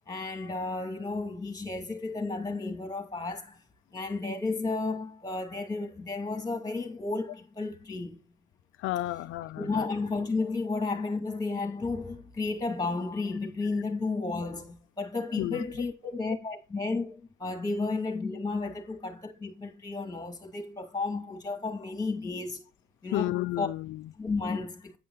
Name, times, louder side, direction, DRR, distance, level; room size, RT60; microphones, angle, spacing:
voice 1, 0.1-3.6 3.9-8.2 9.6-22.6 23.0-23.7 24.2-25.0, left 3 dB, 20° left, 2.4 m, -33 dB
voice 2, 8.8-9.9 13.7-13.8 15.4-15.6 23.1-24.1, left 16 dB, 85° left, 0.4 m, -32 dB
9.4 x 5.4 x 4.0 m
cardioid pair, 90°, 20 cm